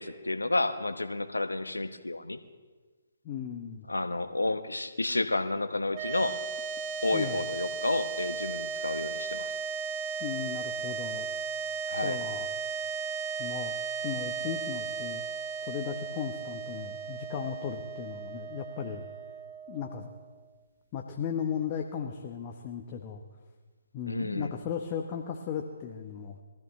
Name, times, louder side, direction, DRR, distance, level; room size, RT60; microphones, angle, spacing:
voice 1, 0.0-2.4 3.9-6.4 7.0-9.5 11.9-12.2 24.1-24.5, left 2 dB, 90° left, 9 dB, 0.9 m, -31 dB
voice 2, 3.2-3.9 7.1-7.4 10.2-11.3 12.0-12.5 13.4-13.8 14.0-15.2 15.6-19.0 19.7-20.1 20.9-23.2 23.9-26.4, left 7 dB, 30° left, 3 dB, 1.0 m, -36 dB
sound 1, 5.9-20.3, right 5 dB, 30° right, 1.0 m, -36 dB
22.5 x 14.0 x 3.2 m, 1.4 s
figure-of-eight pair, 140°, 0 cm